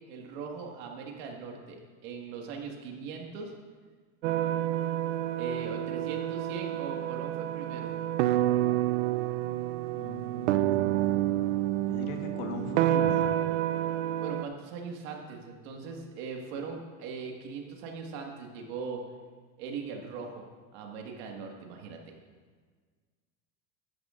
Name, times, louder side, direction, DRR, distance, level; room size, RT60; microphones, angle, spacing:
voice 1, 0.1-3.5 5.4-7.9 14.2-19.0 19.6-20.4 20.7-22.1, right 5 dB, 60° right, 1 dB, 1.8 m, -40 dB
sound 1, 4.2-14.4, right 13 dB, 80° right, 0.6 m, -29 dB
voice 2, 9.9-10.8 11.9-13.3, left 3 dB, 50° left, 3 dB, 1.3 m, -39 dB
14.0 x 10.5 x 2.5 m, 1.5 s
supercardioid pair, 170°, 37 cm